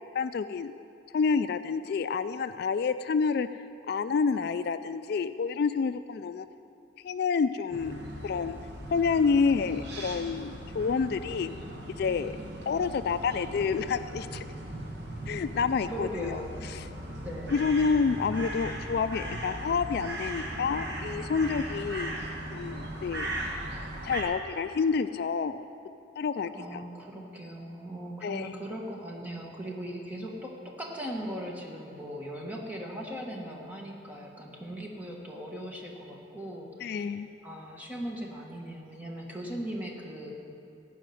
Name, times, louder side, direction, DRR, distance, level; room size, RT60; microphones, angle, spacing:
voice 1, 0.1-0.7 1.1-6.5 7.0-8.0 8.2-8.6 8.9-11.5 12.0-12.3 12.7-14.4 15.3-16.4 16.7-16.8 17.5-22.2 22.5-23.3 23.6-23.7 24.0-25.7 26.2-26.8 28.2-28.5 36.8-37.3, left 5 dB, 60° left, 12 dB, 0.3 m, -28 dB
sound 1, 7.7-24.2, right 1 dB, 65° right, 1.6 m, -38 dB
voice 2, 15.9-16.7 17.2-17.7 26.5-37.1 37.4-40.3, equal, 10° right, -1 dB, 1.5 m, -39 dB
15.0 x 5.6 x 9.3 m, 2.6 s
head